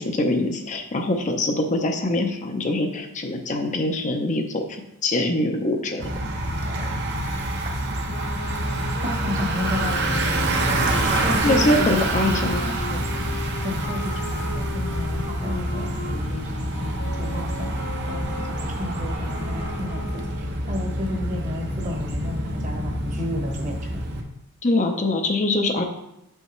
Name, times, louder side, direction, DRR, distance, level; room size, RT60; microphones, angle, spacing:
voice 1, 0.0-6.1 10.9-12.6 24.6-25.8, left 2 dB, 35° left, 4 dB, 0.6 m, -24 dB
Bicycle, 6.0-24.2, right 1 dB, 50° right, 0.8 m, -27 dB
voice 2, 6.6-6.9 9.2-10.4 11.2-13.0 13.6-20.0 20.4-23.9, left 1 dB, 35° right, 1 dB, 1.1 m, -32 dB
Wind instrument woodwind instrument, 8.1-20.5, left 2 dB, 60° left, 1.3 m, -38 dB
6.7 x 5.5 x 3.1 m, 0.85 s
head